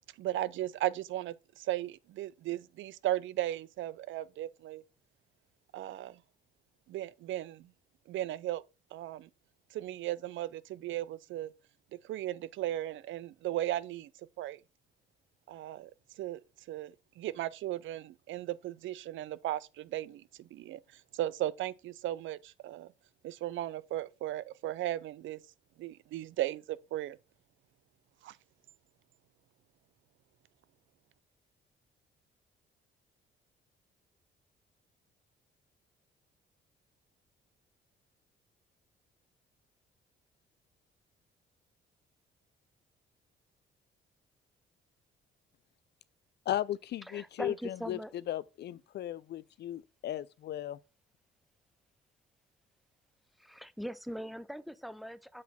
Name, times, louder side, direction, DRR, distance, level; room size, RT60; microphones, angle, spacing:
voice 1, 0.2-4.8 5.7-6.2 6.9-7.7 8.1-8.6 8.9-9.3 9.7-11.5 12.0-14.1 14.4-14.6 15.5-15.9 16.2-16.4 16.7-22.9 23.2-25.4 25.8-27.2 28.2-28.4, right 14 dB, 75° right, 0.5 m, -36 dB
voice 2, 46.5-48.0 48.3-50.8, left 12 dB, 60° left, 0.4 m, -36 dB
voice 3, 47.0-48.1 53.4-55.4, equal, ahead, 0.5 m, -41 dB
7.4 x 4.1 x 4.2 m
cardioid pair, 90°, 20 cm